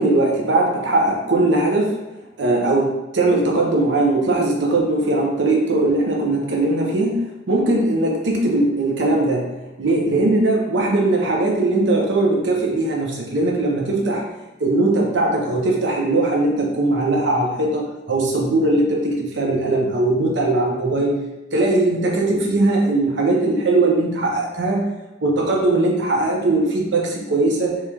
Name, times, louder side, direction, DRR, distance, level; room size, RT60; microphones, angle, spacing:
voice 1, 0.0-2.0 2.4-9.5 9.8-14.2 14.6-21.1 21.5-24.8 25.2-27.7, right 2 dB, 75° right, 0 dB, 0.7 m, -19 dB
3.5 x 3.1 x 3.0 m, 1.0 s
head